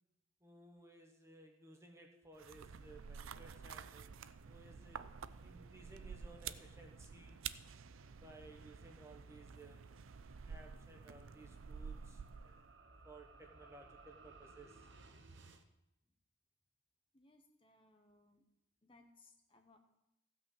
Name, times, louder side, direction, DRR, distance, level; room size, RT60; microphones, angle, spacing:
voice 1, 0.4-4.1 4.4-5.1 5.4-7.4 8.2-9.8 10.5-12.7 13.0-14.9, right 2 dB, 15° right, 2 dB, 1.2 m, -59 dB
sound 1, 2.4-12.8, right 6 dB, 80° right, 0.5 m, -50 dB
sound 2, 8.4-15.6, right 3 dB, 60° right, 0.9 m, -62 dB
voice 2, 17.1-18.4 18.8-19.8, left 2 dB, 25° left, 4 dB, 1.0 m, -66 dB
15.5 x 5.7 x 7.2 m, 0.88 s
head